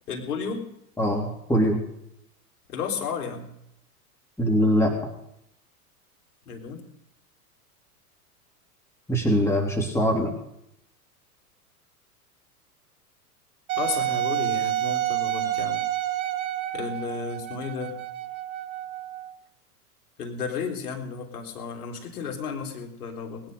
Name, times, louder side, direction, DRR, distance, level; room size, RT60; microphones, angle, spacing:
voice 1, 0.1-0.7 2.7-3.5 6.4-6.8 13.8-15.8 16.7-18.0 20.2-23.4, left 5 dB, 75° left, 2 dB, 3.6 m, -33 dB
voice 2, 1.0-1.8 4.4-4.9 9.1-10.3, equal, 5° left, 1 dB, 3.1 m, -22 dB
Wind instrument woodwind instrument, 13.7-19.3, right 14 dB, 65° right, 1.5 m, -29 dB
20.0 x 10.0 x 5.3 m, 0.78 s
hypercardioid pair, 95°, 46 cm